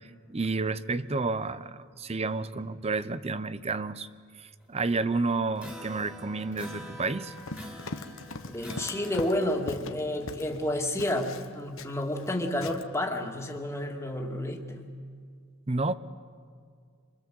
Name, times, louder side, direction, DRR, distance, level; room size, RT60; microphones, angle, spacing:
voice 1, 0.0-4.1 4.4-7.3 15.7-15.9, right 3 dB, 30° right, 15 dB, 0.7 m, -30 dB
sound 1, 5.6-9.8, equal, 10° right, 2.9 m, -44 dB
Run, 7.3-10.6 11.0-12.4 12.6-12.8, left 3 dB, 70° left, 1.1 m, -40 dB
voice 2, 8.5-14.9, left 1 dB, 15° left, 1 dB, 2.3 m, -30 dB
27.0 x 23.5 x 7.8 m, 2.1 s
head